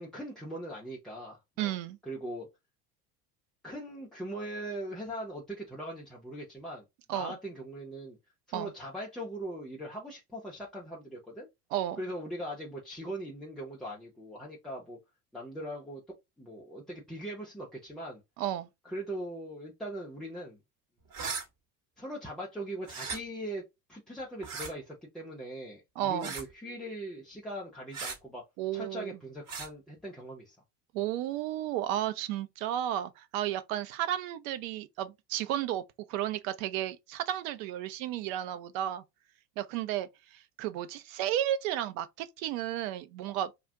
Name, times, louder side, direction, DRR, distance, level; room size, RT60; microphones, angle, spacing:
voice 1, 0.0-1.7 2.1-2.5 3.6-6.8 7.1-8.2 8.5-11.5 12.0-15.0 15.3-16.0 16.4-18.2 18.8-20.6 22.0-23.6 23.9-28.4 28.7-30.6, right 1 dB, ahead, 0.3 m, -40 dB
voice 2, 1.6-2.0 7.1-7.3 8.5-8.7 11.7-12.0 18.4-18.7 26.0-26.3 28.6-29.1 30.9-35.8 36.1-39.0 39.6-43.5, right 12 dB, 55° right, 0.6 m, -33 dB
sound 1, 21.1-21.4 22.8-23.2 24.4-24.7 26.2-26.5 27.9-28.2 29.5-29.7, right 5 dB, 40° right, 1.0 m, -37 dB
2.4 x 2.1 x 3.4 m
hypercardioid pair, 75°, 50 cm